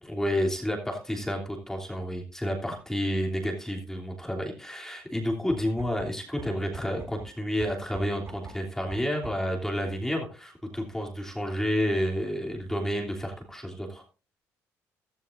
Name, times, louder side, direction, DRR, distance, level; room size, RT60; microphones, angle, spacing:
voice 1, 0.0-14.0, equal, 5° left, 0 dB, 3.1 m, -30 dB
sound 1, 5.5-9.6, right 3 dB, 35° right, 7.0 m, -45 dB
15.0 x 12.5 x 2.6 m, 0.34 s
supercardioid pair, 80°, 7 cm